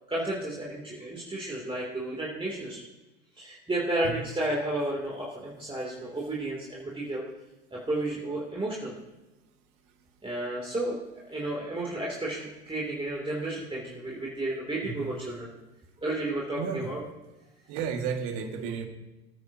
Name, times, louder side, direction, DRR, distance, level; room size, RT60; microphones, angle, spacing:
voice 1, 0.1-2.8 3.4-7.2 7.7-8.9 10.2-11.0 11.2-15.5 16.0-17.0, right 1 dB, 15° right, -4 dB, 2.9 m, -32 dB
voice 2, 16.6-16.9 17.7-18.9, right 6 dB, 60° right, 5 dB, 1.9 m, -32 dB
24.0 x 9.4 x 2.8 m, 1.0 s
hypercardioid pair, 65°, 37 cm